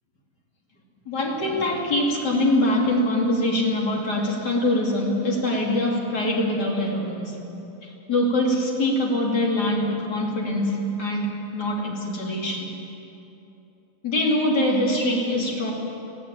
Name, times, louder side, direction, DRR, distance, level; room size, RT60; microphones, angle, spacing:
voice 1, 1.1-7.5 7.8-12.7 14.0-15.7, left 1 dB, 30° left, -2 dB, 2.7 m, -23 dB
20.5 x 15.5 x 8.8 m, 3.0 s
omnidirectional pair, 4.7 m